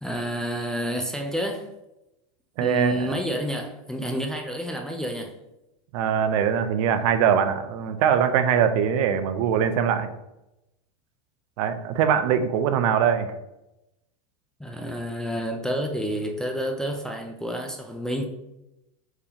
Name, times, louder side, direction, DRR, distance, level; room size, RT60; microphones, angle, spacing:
voice 1, 0.0-1.7 2.6-5.3 14.6-18.2, equal, 5° left, 2 dB, 0.3 m, -29 dB
voice 2, 2.6-3.2 5.9-10.1 11.6-13.3, right 8 dB, 65° right, 10 dB, 0.5 m, -22 dB
4.6 x 3.4 x 2.8 m, 0.91 s
supercardioid pair, 135°, 19 cm